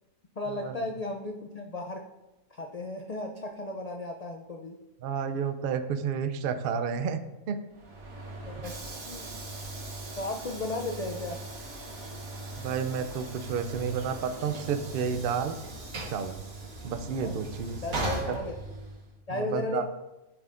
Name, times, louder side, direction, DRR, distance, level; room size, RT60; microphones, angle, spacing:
voice 1, 0.4-2.0 2.5-4.8 8.4-8.8 9.1-9.3 10.2-11.4 17.2-17.4 17.8-18.6 19.3-19.9, left 2 dB, 65° left, 3 dB, 0.3 m, -35 dB
voice 2, 5.0-7.2 7.5-7.6 12.6-15.6 16.1-16.4 16.8-17.8 18.2-18.4 19.3-19.9, right 6 dB, 60° right, 9 dB, 0.6 m, -31 dB
Train / Sliding door, 7.7-19.1, right 2 dB, 85° right, 1.8 m, -39 dB
10.5 x 6.1 x 2.5 m, 1.0 s
omnidirectional pair, 1.4 m